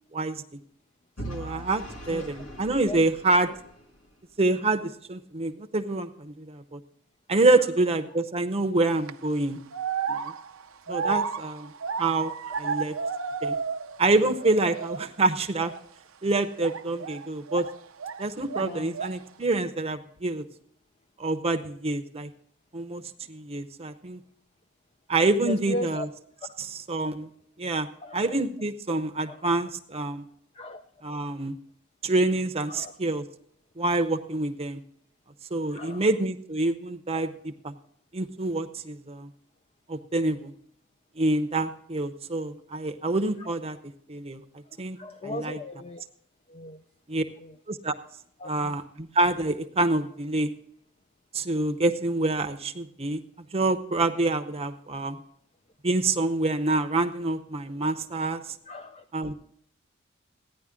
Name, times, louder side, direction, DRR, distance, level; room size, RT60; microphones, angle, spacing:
voice 1, 0.1-0.4 1.3-3.5 4.4-6.8 7.3-9.6 10.1-10.3 10.9-11.7 12.0-12.3 12.6-12.9 13.4-13.6 14.0-15.7 16.2-17.6 18.2-20.4 21.2-22.3 22.7-23.0 23.3-24.2 25.1-26.1 26.9-27.3 27.6-27.9 28.1-30.2 31.0-31.6 32.0-33.2 33.8-34.8 35.5-37.7 38.1-39.3 39.9-40.5 41.2-43.8 44.1-44.4 44.8-45.0 45.2-45.6 47.1-47.2 47.7-47.9 48.5-50.5 51.3-53.2 53.5-55.2 55.8-58.4 59.1-59.3, right 2 dB, 30° right, 7 dB, 0.8 m, -26 dB
Vehicle / Engine, 1.2-4.2, right 1 dB, 75° left, 2.1 m, -41 dB
voice 2, 2.1-2.4 2.9-3.0 3.5-3.6 7.5-7.7 10.9-11.3 12.4-12.9 18.6-19.0 25.4-26.1 27.0-27.1 28.0-28.3 29.2-29.5 30.5-30.8 32.7-33.0 35.7-36.1 37.1-37.3 43.4-43.5 45.0-46.0 46.5-46.8 47.4-47.6 48.4-48.8 58.7-59.0, left 1 dB, 30° left, 6 dB, 0.4 m, -38 dB
sound 1, 8.8-9.1 9.7-14.1 14.3-15.1 15.5-15.8 16.6-18.2 18.5-19.3, right 5 dB, 70° right, 0.6 m, -32 dB
14.5 x 10.0 x 3.7 m, 0.66 s
head